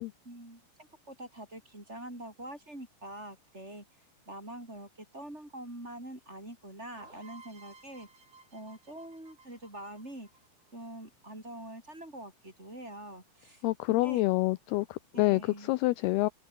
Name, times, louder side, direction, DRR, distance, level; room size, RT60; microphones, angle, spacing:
voice 1, 0.2-3.8 4.3-8.1 8.5-10.3 10.7-14.2 15.1-15.7, right 1 dB, 15° right, 7.0 m, -45 dB
sound 1, 7.0-10.7, right 4 dB, 50° right, 9.7 m, -55 dB
voice 2, 13.6-15.4 15.7-16.3, left 20 dB, 85° left, 2.3 m, -27 dB
open air
omnidirectional pair, 5.3 m